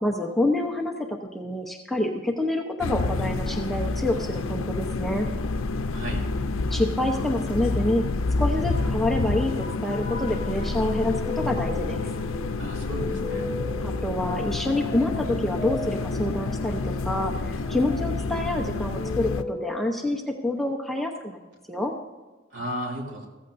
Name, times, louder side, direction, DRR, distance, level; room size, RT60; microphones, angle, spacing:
voice 1, 0.0-5.3 6.7-8.0 8.4-12.0 13.8-21.4 21.7-21.9, left 1 dB, ahead, 0 dB, 0.8 m, -27 dB
sound 1, 2.8-19.4, left 3 dB, 85° left, 0.6 m, -29 dB
voice 2, 5.9-6.2 12.6-13.5 22.5-23.3, equal, 65° right, -1 dB, 2.9 m, -34 dB
sound 2, 7.5-19.8, left 3 dB, 40° left, 2.8 m, -38 dB
15.5 x 14.0 x 2.6 m, 1.2 s
head